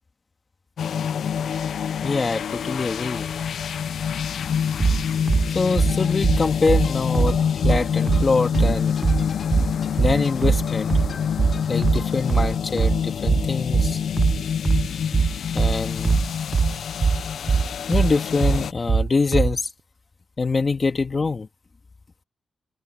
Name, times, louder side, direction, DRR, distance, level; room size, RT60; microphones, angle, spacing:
sound 1, 0.8-18.7, left 8 dB, 75° left, 0.5 m, -26 dB
voice 1, 2.0-3.3 5.5-7.4 7.6-8.9 10.0-11.0 11.7-14.0 15.5-16.2 17.9-19.7 20.4-21.5, left 4 dB, 35° left, 2.8 m, -24 dB
sound 2, 4.8-19.6, right 5 dB, 40° right, 0.5 m, -21 dB
sound 3, 5.8-12.6, left 6 dB, 55° left, 4.6 m, -44 dB
cardioid pair, 105°, 0 cm